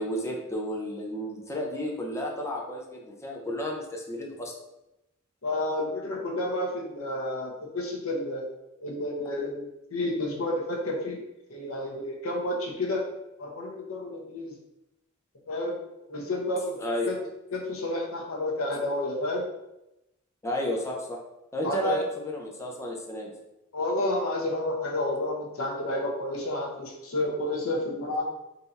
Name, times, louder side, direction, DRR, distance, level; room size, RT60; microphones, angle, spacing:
voice 1, 0.0-4.5 16.8-17.1 20.4-21.2 21.5-23.3, equal, 15° left, -1 dB, 0.6 m, -32 dB
voice 2, 5.4-8.5 8.8-11.2 11.5-13.0 13.4-14.6 15.5-15.8 16.1-16.8 17.1-17.2 17.5-19.4 21.6-22.0 23.7-28.2, left 1 dB, 85° left, 0 dB, 0.9 m, -30 dB
3.9 x 2.8 x 4.0 m, 0.90 s
head